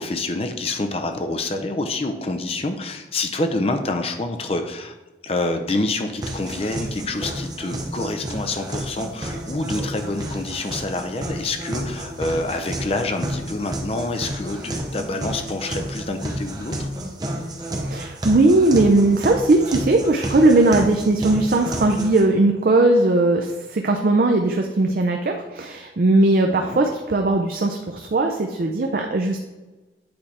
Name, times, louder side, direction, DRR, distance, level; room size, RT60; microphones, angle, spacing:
voice 1, 0.0-4.9 5.2-16.9 26.5-26.8, left 2 dB, 35° left, 6 dB, 0.5 m, -27 dB
sound 1, 6.2-22.2, right 1 dB, 20° right, 0.8 m, -31 dB
voice 2, 17.9-29.4, right 2 dB, 50° right, 3 dB, 0.5 m, -18 dB
8.6 x 3.3 x 4.2 m, 1.2 s
head